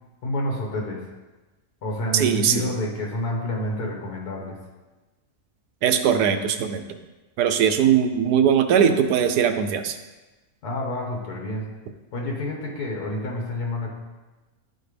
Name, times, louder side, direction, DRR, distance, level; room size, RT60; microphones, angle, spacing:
voice 1, 0.2-1.0 1.8-4.5 10.6-11.7 12.1-13.9, left 1 dB, 75° left, -1 dB, 1.7 m, -28 dB
voice 2, 2.1-2.7 5.8-6.8 7.4-10.0, right 8 dB, 85° right, 7 dB, 1.2 m, -20 dB
12.0 x 4.4 x 3.3 m, 1.2 s
omnidirectional pair, 1.7 m